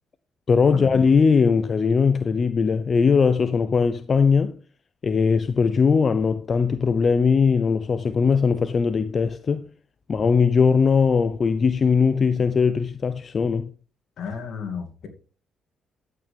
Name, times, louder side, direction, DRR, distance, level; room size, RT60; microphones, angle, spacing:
voice 1, 0.5-4.5 5.0-9.7 10.1-13.7, left 5 dB, 40° left, 0.6 m, -20 dB
voice 2, 14.2-15.1, left 6 dB, 70° left, 2.4 m, -33 dB
12.0 x 8.8 x 3.4 m
cardioid pair, 90°, 0 cm